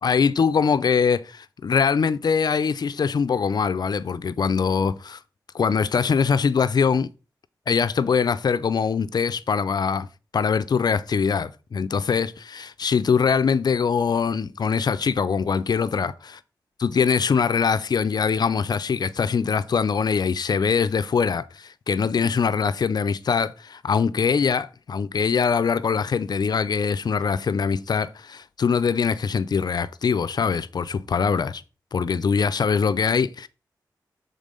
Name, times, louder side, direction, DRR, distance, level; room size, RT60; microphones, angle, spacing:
voice 1, 0.0-5.2 5.5-7.1 7.7-10.1 10.3-16.1 16.8-31.6 31.9-33.5, left 6 dB, 65° left, 0.5 m, -23 dB
7.4 x 3.8 x 5.2 m
wide cardioid pair, 75°, 7 cm